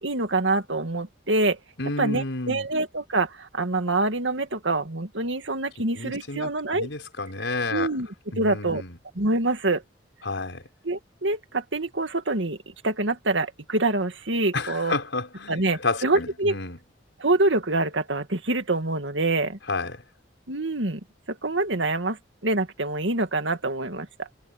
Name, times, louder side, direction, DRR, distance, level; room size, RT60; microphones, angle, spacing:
voice 1, 0.0-1.6 2.0-6.9 7.7-8.1 8.4-8.8 9.2-9.8 10.8-12.6 12.8-14.9 15.5-16.5 17.2-19.6 20.5-21.0 21.3-24.3, right 2 dB, 90° right, 2.3 m, -25 dB
voice 2, 1.8-2.7 5.8-7.9 8.3-9.0 10.2-10.7 14.5-16.8 19.7-20.0, left 3 dB, 90° left, 5.0 m, -31 dB
head